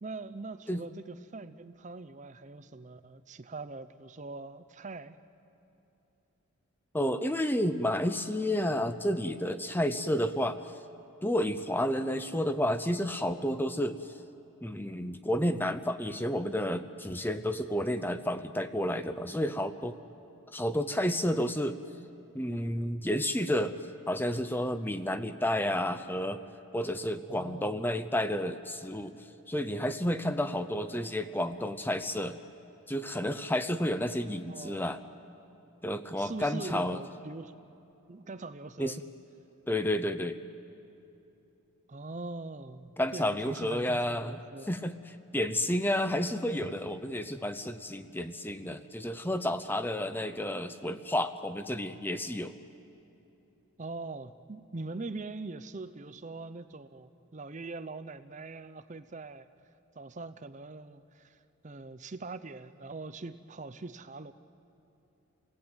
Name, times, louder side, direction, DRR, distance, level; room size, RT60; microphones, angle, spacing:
voice 1, 0.0-5.2 27.3-27.9 34.1-34.9 36.2-37.5 38.1-39.0 41.9-44.7 53.8-59.5 60.0-64.3, right 3 dB, 35° right, 12 dB, 0.6 m, -42 dB
voice 2, 6.9-10.6 11.2-14.1 14.6-20.0 20.5-21.8 22.3-23.8 24.1-26.4 26.7-29.2 29.5-32.4 32.9-35.0 35.8-37.0 38.8-38.9 39.7-40.4 43.0-44.4 44.7-52.5, left 1 dB, 10° left, 10 dB, 0.6 m, -31 dB
29.5 x 18.0 x 8.9 m, 2.9 s
head